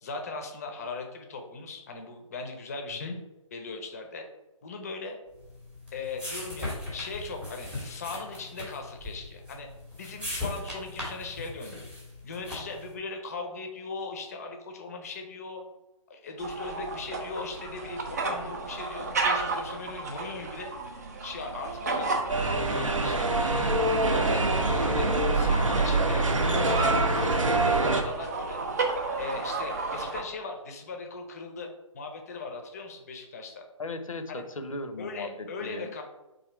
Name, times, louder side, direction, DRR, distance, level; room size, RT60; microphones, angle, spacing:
voice 1, 0.0-3.2 3.5-4.3 4.6-5.2 5.9-9.7 10.0-11.8 12.2-15.6 16.1-20.7 21.2-22.1 22.5-23.8 24.1-28.6 29.2-33.6 34.3-34.4 35.0-36.0, left 3 dB, 30° left, 4 dB, 0.6 m, -39 dB
sound 1, 5.4-12.9, left 1 dB, 5° right, 0.8 m, -38 dB
sound 2, 16.4-30.2, right 3 dB, 30° right, 0.5 m, -34 dB
sound 3, 22.3-28.0, right 2 dB, 65° right, 0.7 m, -24 dB
voice 2, 33.8-35.9, left 2 dB, 70° left, 7 dB, 0.6 m, -37 dB
3.8 x 2.7 x 4.3 m, 1.0 s
figure-of-eight pair, 140°, 18 cm